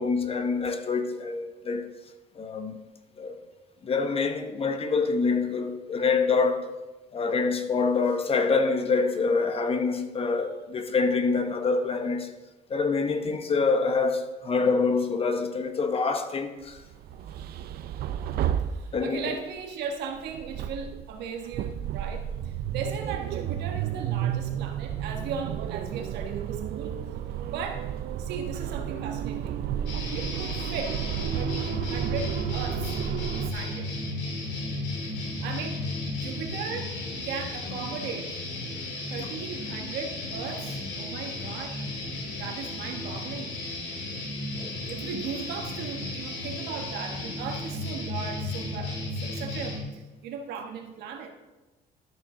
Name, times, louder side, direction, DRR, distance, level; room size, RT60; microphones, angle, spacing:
voice 1, 0.0-1.9 2.4-2.8 3.2-3.4 3.8-6.7 7.1-12.3 12.7-16.8 18.9-19.2 44.6-44.7, left 4 dB, 35° left, 0.9 m, -26 dB
sound 1, 16.8-19.4 20.1-33.5, right 10 dB, 65° right, 0.5 m, -32 dB
voice 2, 18.8-26.9 27.5-27.9 28.2-29.6 30.1-31.0 31.3-33.0 33.3-33.9 35.4-37.0 37.2-38.4 39.1-41.8 42.4-43.6 44.7-51.3, right 6 dB, 85° right, 1.3 m, -37 dB
sound 2, 29.9-49.8, left 2 dB, 90° left, 2.2 m, -34 dB
12.5 x 6.2 x 3.8 m
cardioid pair, 110°, 17 cm